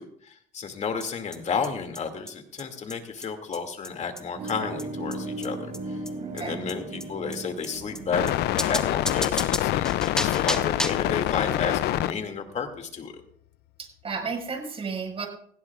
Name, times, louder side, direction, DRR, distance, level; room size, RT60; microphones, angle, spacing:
voice 1, 0.0-6.0 6.3-13.2, left 5 dB, 45° left, 5 dB, 2.5 m, -32 dB
sound 1, 1.0-1.1 1.3-1.4 1.6-1.7 2.0-2.1 2.3-2.4 2.6-2.7 2.9-3.0 3.2-3.3 3.5-3.6 3.8-3.9 4.2-4.3 4.5-4.6 4.8-4.9 5.1-5.2 5.4-5.5 5.7-5.8 6.1-6.2 6.4-6.5 6.7-6.8 7.0-7.1 7.3-7.4 7.6-7.7 8.0-8.1 8.3-8.4 8.6-11.1, left 1 dB, 5° left, 1.4 m, -32 dB
sound 2, 4.3-9.1, right 2 dB, 55° right, 5.1 m, -37 dB
voice 2, 6.2-6.6 13.8-15.3, right 5 dB, 35° right, 3 dB, 5.3 m, -33 dB
sound 3, 7.8-12.1, left 15 dB, 75° left, 0.5 m, -26 dB
18.5 x 16.5 x 2.5 m, 0.63 s
cardioid pair, 110°, 17 cm